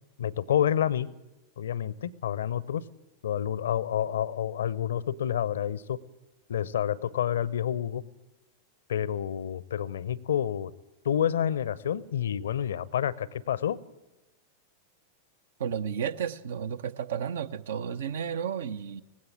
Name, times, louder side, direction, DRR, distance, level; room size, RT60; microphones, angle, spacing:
voice 1, 0.2-1.1 1.6-2.8 3.2-6.0 6.5-8.0 8.9-10.7 11.0-13.8, left 9 dB, 65° left, 21 dB, 0.6 m, -29 dB
voice 2, 15.6-19.0, right 8 dB, 60° right, 15 dB, 0.7 m, -32 dB
19.0 x 16.0 x 8.6 m, 1.0 s
figure-of-eight pair, 90°, 0 cm